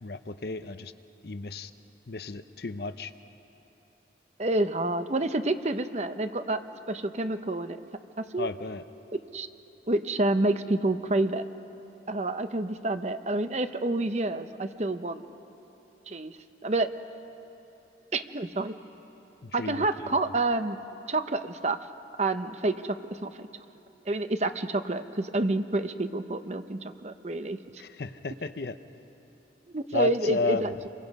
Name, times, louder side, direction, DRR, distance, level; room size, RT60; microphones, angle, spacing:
voice 1, 0.0-0.9 1.2-1.7 2.1-3.1 8.4-8.8 19.4-20.1 27.8-28.8 29.9-30.7, left 3 dB, 60° left, 11 dB, 0.7 m, -33 dB
voice 2, 4.4-6.6 6.9-7.8 8.2-8.5 9.3-9.5 9.9-11.4 12.1-15.2 16.1-16.3 16.6-16.9 18.1-18.7 19.5-20.8 21.1-21.8 22.2-23.5 24.1-27.6 29.7-30.9, right 2 dB, 40° right, 10 dB, 0.7 m, -28 dB
27.5 x 23.5 x 5.4 m, 3.0 s
head